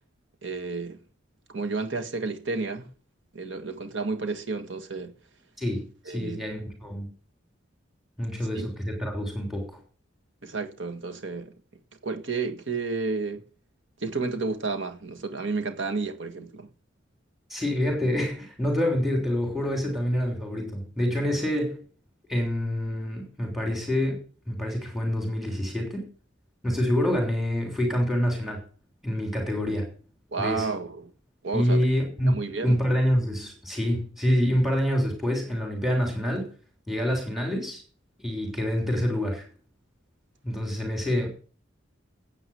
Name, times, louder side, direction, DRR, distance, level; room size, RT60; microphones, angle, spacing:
voice 1, 0.4-1.0 1.5-2.9 3.3-5.1 6.0-6.4 8.5-8.7 10.4-11.5 12.0-13.4 14.0-16.7 30.3-31.1 31.4-31.8 32.3-32.8, right 4 dB, 75° right, 1.7 m, -31 dB
voice 2, 5.6-7.1 8.2-9.8 17.5-21.8 22.3-26.1 26.6-28.6 29.0-29.9 30.4-30.7 31.5-36.5 36.9-37.8 38.2-39.5 40.4-41.3, equal, ahead, 3.1 m, -27 dB
9.4 x 8.4 x 7.1 m
head